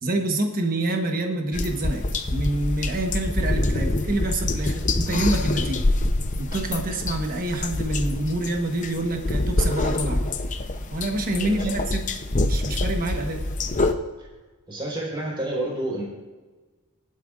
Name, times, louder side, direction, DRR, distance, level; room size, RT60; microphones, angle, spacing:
voice 1, 0.0-2.0 2.3-5.9 6.4-10.2 10.9-12.1 12.4-13.4, right 1 dB, 40° right, 3 dB, 1.1 m, -27 dB
sound 1, 1.5-13.9, left 2 dB, 35° left, 0.7 m, -26 dB
voice 2, 11.4-11.8 14.7-16.0, right 1 dB, 20° right, -5 dB, 4.3 m, -29 dB
19.5 x 11.5 x 2.5 m, 1.3 s
head